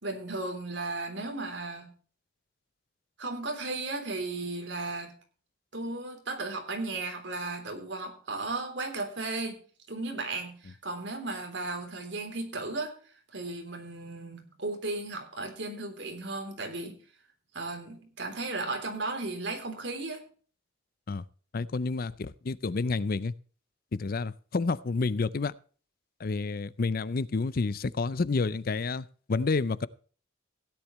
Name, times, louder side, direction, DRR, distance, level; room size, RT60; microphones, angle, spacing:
voice 1, 0.0-1.9 3.2-5.1 5.7-9.6 9.9-13.0 13.3-17.0 17.5-20.2, right 2 dB, 65° right, 3.4 m, -35 dB
voice 2, 21.5-23.3 23.9-25.5 26.2-29.9, left 3 dB, 50° left, 0.5 m, -29 dB
16.5 x 10.0 x 3.1 m
head